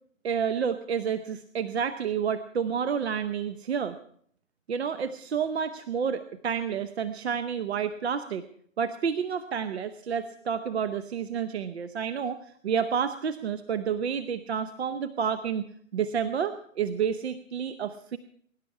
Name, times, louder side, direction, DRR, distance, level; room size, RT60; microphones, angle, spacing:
voice 1, 0.2-4.0 4.7-8.4 8.8-18.2, right 7 dB, 50° right, 12 dB, 0.9 m, -30 dB
22.5 x 11.5 x 4.8 m, 0.62 s
hypercardioid pair, 145°, 40 cm